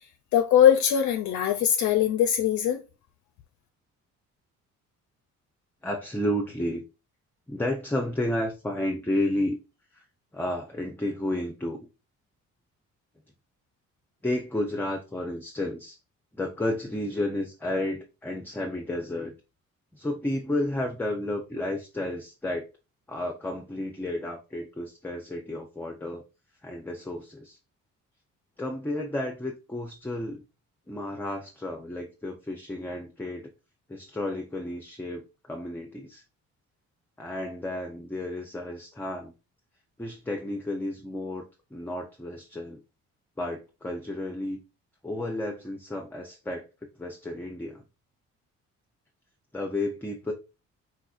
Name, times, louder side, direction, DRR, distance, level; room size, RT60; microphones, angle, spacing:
voice 1, 0.3-2.8, left 10 dB, 70° left, 0.4 m, -21 dB
voice 2, 5.8-6.8 7.5-9.6 9.9-10.0 10.3-11.8 14.2-16.0 16.3-19.3 19.9-22.7 23.1-26.2 26.6-27.6 28.6-30.4 30.9-33.5 33.9-35.2 35.5-36.2 37.2-39.3 40.0-41.4 41.7-42.8 43.4-44.6 45.0-46.7 47.0-47.8 49.5-50.3, left 1 dB, 5° left, 0.5 m, -32 dB
4.2 x 2.5 x 2.4 m
cardioid pair, 90°, 30 cm